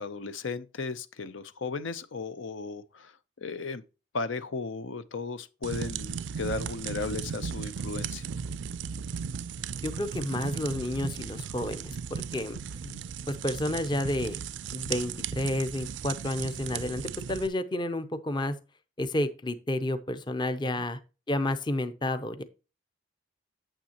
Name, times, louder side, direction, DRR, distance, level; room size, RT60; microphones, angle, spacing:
voice 1, 0.0-3.1 3.4-3.8 4.1-8.3 12.8-13.0 20.6-20.8, left 3 dB, 85° left, 0.7 m, -35 dB
sound 1, 5.6-17.5, right 7 dB, 70° right, 0.4 m, -36 dB
voice 2, 9.8-12.6 13.3-14.4 14.7-18.6 19.0-21.0 21.3-22.4, left 1 dB, 25° left, 0.6 m, -30 dB
8.9 x 7.2 x 2.9 m
head